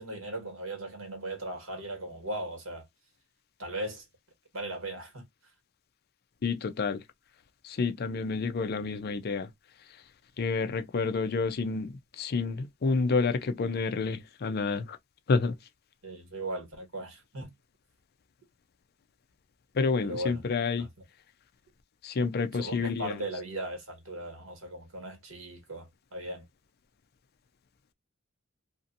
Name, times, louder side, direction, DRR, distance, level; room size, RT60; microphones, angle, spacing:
voice 1, 0.0-2.8 3.6-4.0 4.5-5.2 16.0-17.5 20.0-20.4 20.8-20.9 22.5-26.4, right 1 dB, 80° right, 1.4 m, -38 dB
voice 2, 6.4-7.0 7.6-9.5 10.4-15.0 15.3-15.5 19.8-20.9 22.0-23.1, left 4 dB, 50° left, 0.4 m, -29 dB
2.7 x 2.5 x 2.5 m
head